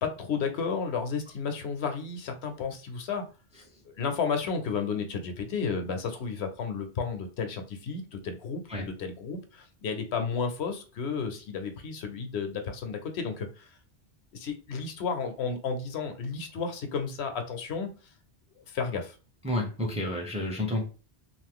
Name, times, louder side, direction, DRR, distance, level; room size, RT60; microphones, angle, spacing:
voice 1, 0.0-3.2 4.0-13.7 14.3-17.9 18.7-19.2, left 5 dB, 80° left, 6 dB, 0.9 m, -32 dB
voice 2, 19.4-20.8, left 1 dB, 5° right, 0 dB, 0.6 m, -30 dB
2.6 x 2.4 x 3.6 m, 0.34 s
omnidirectional pair, 1.1 m